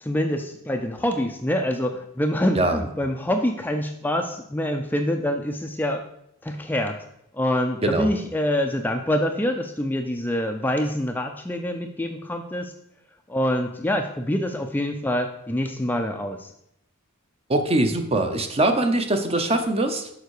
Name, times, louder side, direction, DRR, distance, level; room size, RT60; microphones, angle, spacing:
voice 1, 0.0-6.0 6.4-7.0 7.3-12.7 13.3-16.5, left 1 dB, 10° left, 4 dB, 0.4 m, -25 dB
voice 2, 7.8-8.1 17.5-20.1, right 2 dB, 30° right, 6 dB, 0.7 m, -22 dB
6.9 x 5.7 x 4.7 m, 0.77 s
head